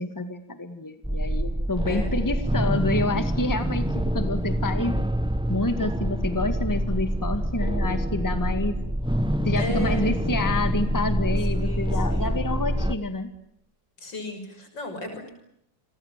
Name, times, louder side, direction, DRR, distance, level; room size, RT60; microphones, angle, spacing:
voice 1, 0.0-3.9 4.1-4.9 5.5-8.8 9.4-13.3, left 2 dB, 10° left, 9 dB, 2.1 m, -28 dB
sound 1, 1.0-12.9, equal, 5° right, 0.4 m, -26 dB
voice 2, 9.6-10.2 11.6-12.4 14.0-15.3, left 1 dB, 75° left, 7 dB, 6.9 m, -35 dB
29.0 x 22.5 x 7.6 m, 0.75 s
omnidirectional pair, 2.0 m